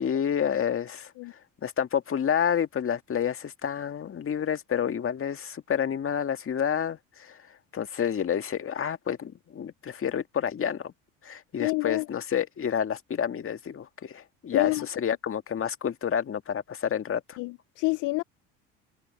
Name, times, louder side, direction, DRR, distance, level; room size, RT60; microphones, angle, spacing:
voice 1, 0.0-7.4 7.7-10.9 11.2-17.4, left 8 dB, 35° left, 2.0 m, -29 dB
voice 2, 11.6-12.0 14.5-14.9 17.4-18.2, left 24 dB, 55° left, 0.5 m, -27 dB
hypercardioid pair, 75°, 37 cm